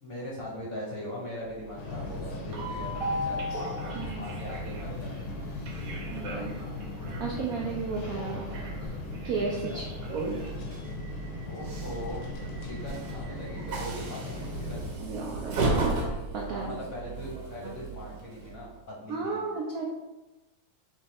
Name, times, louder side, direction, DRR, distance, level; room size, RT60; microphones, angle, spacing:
voice 1, 0.0-3.4 4.1-5.2 9.6-9.8 11.4-12.3 12.6-14.8 16.5-19.5, equal, 55° left, -4 dB, 1.1 m, -40 dB
Train, 1.5-18.8, right 3 dB, 65° right, 1.3 m, -36 dB
sound 1, 1.8-15.0, left 4 dB, 85° left, 1.4 m, -39 dB
voice 2, 6.1-6.5 7.2-8.4 9.2-10.5 15.0-16.0 16.3-16.8 19.1-19.8, right 4 dB, 80° right, -2 dB, 0.8 m, -33 dB
3.6 x 3.1 x 4.1 m, 1.1 s
omnidirectional pair, 2.2 m